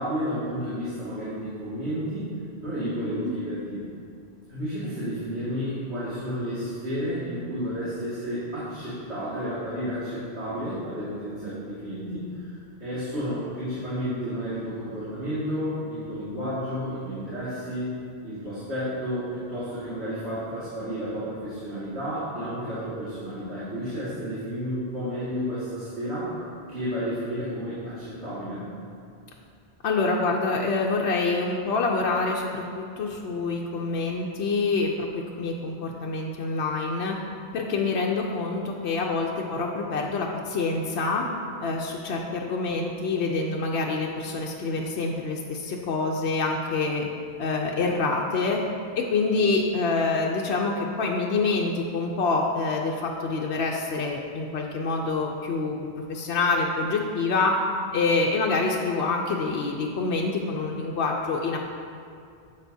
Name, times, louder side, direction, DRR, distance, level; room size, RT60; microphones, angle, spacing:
voice 1, 0.0-2.2 2.6-3.8 4.5-17.9 18.2-26.3 26.7-28.7, equal, 80° right, -13 dB, 2.4 m, -31 dB
voice 2, 29.8-37.2 37.5-41.2 41.6-47.1 47.4-48.6 49.0-55.8 56.1-57.5 57.9-61.6, left 3 dB, 75° left, -1 dB, 0.9 m, -26 dB
10.5 x 7.3 x 2.7 m, 2.4 s
omnidirectional pair, 1.1 m